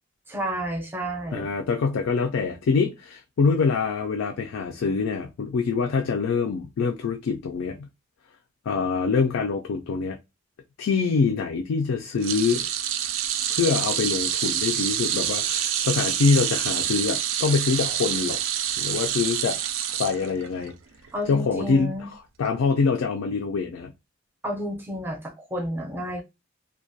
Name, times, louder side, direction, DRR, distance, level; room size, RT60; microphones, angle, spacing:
voice 1, 0.3-1.5 21.1-22.1 24.4-26.2, equal, 10° right, 0.5 m, -31 dB
voice 2, 1.3-7.9 8.7-10.2 10.8-12.7 13.5-18.4 18.8-19.6 19.9-20.7 21.3-23.9, left 5 dB, 85° left, 0.4 m, -25 dB
sound 1, 12.2-20.7 21.0-21.3 22.5-22.6, right 10 dB, 75° right, 0.4 m, -27 dB
2.3 x 2.1 x 2.6 m
head